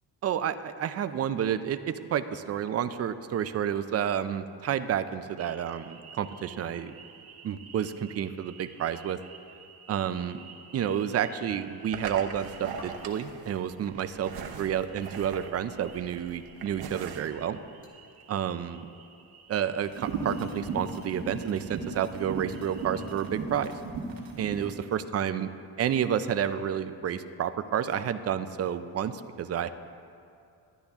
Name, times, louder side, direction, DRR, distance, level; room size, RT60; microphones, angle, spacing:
voice 1, 0.2-6.9 7.4-9.2 9.9-10.4 10.7-17.6 18.3-18.9 19.5-23.7 24.4-25.5 25.8-29.7, right 9 dB, 35° right, 12 dB, 0.4 m, -30 dB
sound 1, 5.4-23.3, right 6 dB, 55° right, 0.9 m, -46 dB
sound 2, 11.3-11.8 12.6-13.0 13.6-13.8 14.7-14.8 16.7-16.8 17.8-17.9, left 2 dB, 30° left, 1.7 m, -51 dB
sound 3, 19.9-24.7, right 4 dB, 75° right, 1.5 m, -36 dB
12.0 x 10.0 x 3.5 m, 2.5 s
cardioid pair, 125°, 44 cm